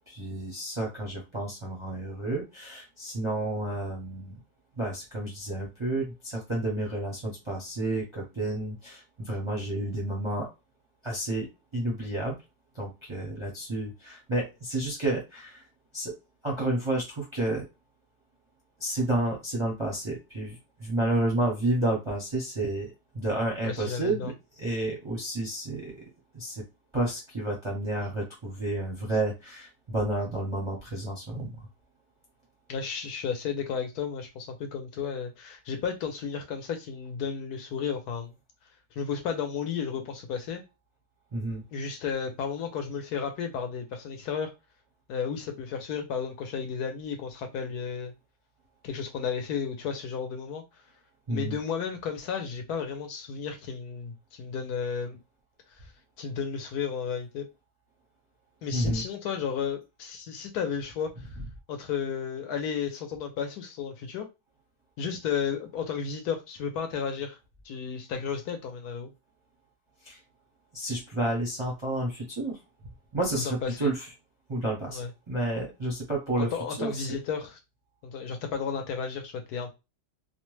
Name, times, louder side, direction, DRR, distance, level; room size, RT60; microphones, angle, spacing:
voice 1, 0.1-4.3 4.8-10.5 11.0-11.5 11.7-12.4 12.7-15.7 15.9-16.2 16.4-17.7 18.8-22.9 23.1-24.3 24.6-26.0 26.3-26.6 26.9-31.7 41.3-41.6 51.3-51.6 58.7-59.0 70.0-70.2 70.7-72.6 73.1-74.1 74.5-76.5 76.8-77.1, right 1 dB, 30° right, 0.5 m, -30 dB
voice 2, 23.6-24.3 32.7-38.3 39.0-40.6 41.7-44.5 45.1-48.1 48.8-50.6 51.3-55.2 55.8-55.9 56.2-57.5 58.6-61.4 61.7-64.3 65.0-67.4 67.6-69.1 73.3-73.9 74.9-75.1 76.4-77.6 78.0-79.7, left 6 dB, 70° left, 1.1 m, -33 dB
2.8 x 2.1 x 3.1 m
omnidirectional pair, 1.8 m